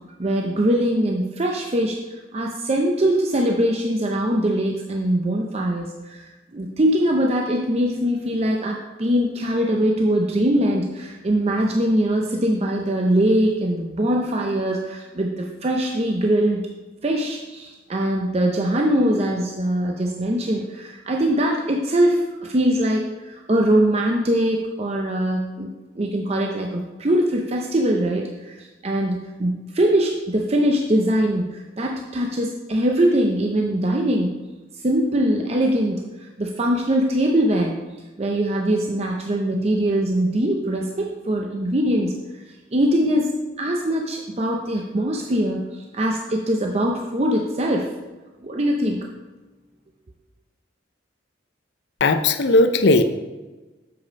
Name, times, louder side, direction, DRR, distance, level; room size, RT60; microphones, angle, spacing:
voice 1, 0.2-6.2 6.5-16.6 17.0-25.7 26.0-34.4 34.8-37.7 38.2-42.1 42.7-47.9 48.4-49.0, right 1 dB, 35° right, 1 dB, 0.6 m, -22 dB
voice 2, 52.0-53.0, left 2 dB, 60° left, 10 dB, 0.6 m, -17 dB
7.7 x 5.3 x 5.2 m, 1.2 s
head